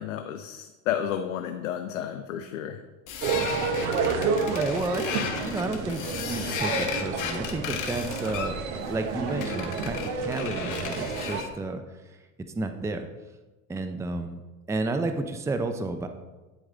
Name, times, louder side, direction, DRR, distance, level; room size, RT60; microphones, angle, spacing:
voice 1, 0.0-2.8, left 9 dB, 85° left, 7 dB, 0.6 m, -31 dB
sound 1, 3.1-11.5, left 7 dB, 50° left, 1.2 m, -35 dB
sound 2, 3.2-11.4, right 4 dB, 75° right, 1.1 m, -30 dB
voice 2, 4.4-12.2 12.5-13.1 13.7-14.4 14.7-16.1, right 2 dB, 10° right, 7 dB, 0.5 m, -31 dB
8.9 x 4.6 x 3.8 m, 1.2 s
hypercardioid pair, 80°, 39 cm